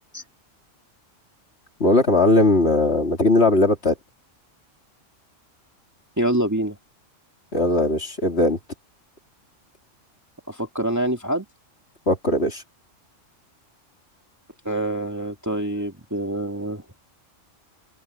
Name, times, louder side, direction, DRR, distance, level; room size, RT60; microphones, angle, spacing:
voice 1, 1.8-3.9 7.5-8.6 12.1-12.6, left 2 dB, 55° left, 3.3 m, -19 dB
voice 2, 6.2-6.8 10.5-11.4 14.6-16.8, right 1 dB, 15° right, 2.2 m, -25 dB
open air
omnidirectional pair, 1.3 m